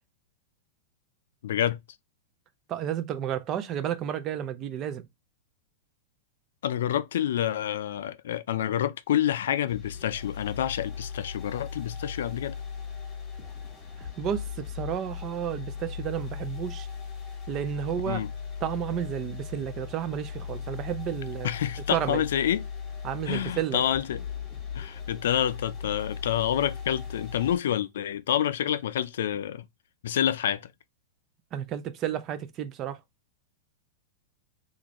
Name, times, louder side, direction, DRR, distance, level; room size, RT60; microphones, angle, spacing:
voice 1, 1.4-1.8 6.6-12.6 18.1-18.3 21.4-22.6 23.2-24.2 24.7-29.7 30.0-30.7, left 10 dB, 75° left, 0.4 m, -28 dB
voice 2, 2.7-5.1 14.0-16.9 17.5-18.2 18.6-21.5 21.9-22.2 23.0-23.8 31.5-33.0, right 10 dB, 25° right, 0.4 m, -31 dB
sound 1, 9.7-27.6, left 6 dB, 15° left, 0.8 m, -38 dB
3.7 x 2.6 x 3.0 m
supercardioid pair, 170°, 0 cm